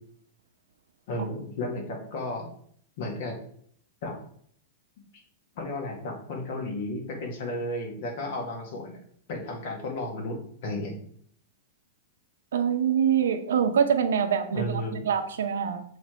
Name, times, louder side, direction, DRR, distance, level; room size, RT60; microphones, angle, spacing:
voice 1, 1.1-2.5 3.0-3.4 4.0-4.1 5.6-9.0 9.3-10.9 14.5-15.1, left 1 dB, 55° left, 2 dB, 1.7 m, -33 dB
voice 2, 12.5-15.8, right 8 dB, 85° right, 7 dB, 0.8 m, -25 dB
7.1 x 3.3 x 4.4 m, 0.64 s
supercardioid pair, 155°, 0 cm